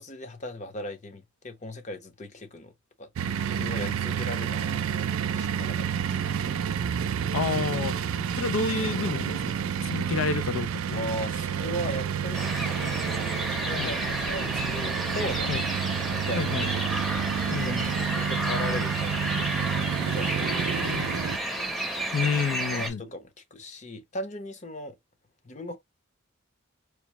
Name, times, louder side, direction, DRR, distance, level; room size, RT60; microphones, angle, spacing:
voice 1, 0.0-2.7 3.0-6.4 10.9-13.0 13.5-15.5 16.1-16.8 17.5-19.6 20.1-20.9 22.7-25.0 25.4-25.8, left 1 dB, 35° left, 0.7 m, -38 dB
sound 1, 3.2-21.4, right 8 dB, 85° right, 0.4 m, -29 dB
voice 2, 7.3-9.4 9.8-11.1 13.8-13.9 15.5-15.6 16.3-16.7 17.5-17.8 20.8-21.2 22.1-23.0, left 5 dB, 80° left, 0.4 m, -29 dB
sound 2, 12.3-22.9, right 1 dB, ahead, 0.7 m, -31 dB
4.6 x 2.0 x 2.9 m
head